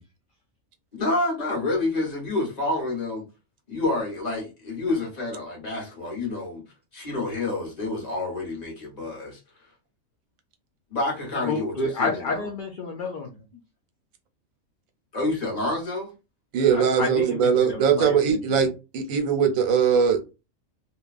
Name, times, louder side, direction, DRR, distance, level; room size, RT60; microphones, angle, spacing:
voice 1, 0.9-3.3 3.7-6.6 6.9-9.4 10.9-12.4 15.1-16.1, left 2 dB, 30° left, 1.3 m, -28 dB
voice 2, 11.4-13.4 16.7-18.7, left 3 dB, 55° left, 0.6 m, -30 dB
voice 3, 16.5-18.7 18.9-20.2, right 7 dB, 85° right, 1.1 m, -20 dB
2.8 x 2.2 x 2.4 m
omnidirectional pair, 1.4 m